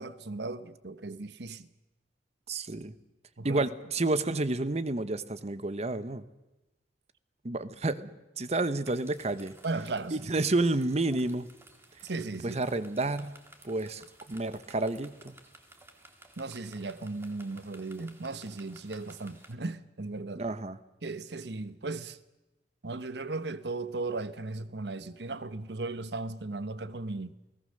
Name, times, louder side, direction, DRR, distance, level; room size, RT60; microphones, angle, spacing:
voice 1, 0.0-1.7 3.4-3.7 9.6-10.3 12.0-12.6 16.4-20.4 21.0-22.2 22.8-27.4, right 3 dB, 70° right, 1.0 m, -36 dB
voice 2, 2.5-2.9 3.4-6.2 7.4-9.6 10.1-11.5 12.4-13.3 13.6-15.4 20.4-20.8, right 2 dB, 35° right, 0.9 m, -30 dB
sound 1, 8.9-19.5, right 2 dB, 15° right, 2.0 m, -56 dB
29.0 x 17.5 x 6.6 m
head